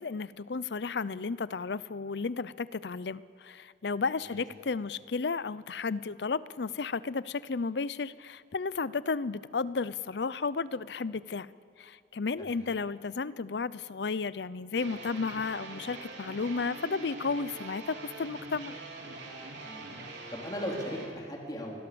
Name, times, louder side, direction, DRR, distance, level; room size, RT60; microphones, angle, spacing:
voice 1, 0.0-11.5 11.8-18.7, left 4 dB, 70° left, 18 dB, 0.6 m, -33 dB
voice 2, 12.3-12.7 19.6-19.9 20.3-21.7, equal, 20° left, -1 dB, 3.7 m, -38 dB
sound 1, 14.7-21.1, right 2 dB, 85° right, 3.8 m, -43 dB
27.0 x 21.0 x 7.0 m, 2.4 s
head